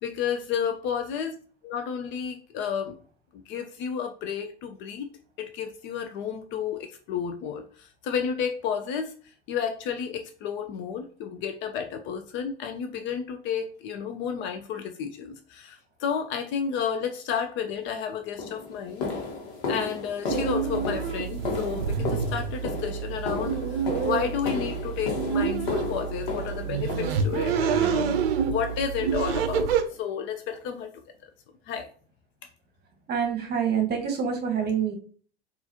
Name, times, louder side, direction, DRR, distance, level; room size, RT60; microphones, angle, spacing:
voice 1, 0.0-1.4 1.6-3.0 3.5-5.1 5.4-9.1 9.5-19.1 19.7-30.9 31.2-31.3 31.7-31.9, left 7 dB, 40° left, 6 dB, 0.4 m, -31 dB
sound 1, 17.7-17.8 18.4-27.6 28.1-28.4 28.7-28.9 29.3-29.5 29.9-30.0 30.5-30.6, left 3 dB, 60° left, 1.1 m, -34 dB
sound 2, 20.3-29.8, right 7 dB, 65° right, 0.6 m, -28 dB
voice 2, 33.1-34.9, right 7 dB, 30° right, 4 dB, 1.1 m, -26 dB
3.8 x 2.5 x 2.8 m, 0.42 s
figure-of-eight pair, 80°, 32 cm